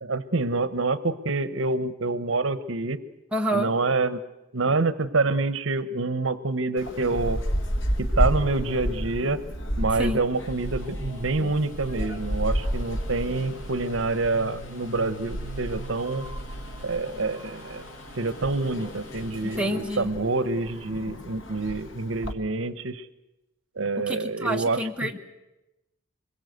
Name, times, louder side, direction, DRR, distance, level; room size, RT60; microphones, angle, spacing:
voice 1, 0.0-3.0 3.5-4.2 4.5-7.4 8.0-9.4 9.8-16.2 16.8-17.8 18.2-23.1 23.8-25.1, right 3 dB, 70° right, 14 dB, 1.0 m, -27 dB
voice 2, 3.3-3.7 10.0-10.2 19.4-20.1 24.1-25.2, equal, 5° right, 1 dB, 1.5 m, -28 dB
sound 1, 6.8-22.3, equal, 65° left, 2.0 m, -32 dB
sound 2, 10.3-19.7, right 4 dB, 35° left, 6.2 m, -47 dB
25.0 x 22.0 x 8.0 m, 0.96 s
head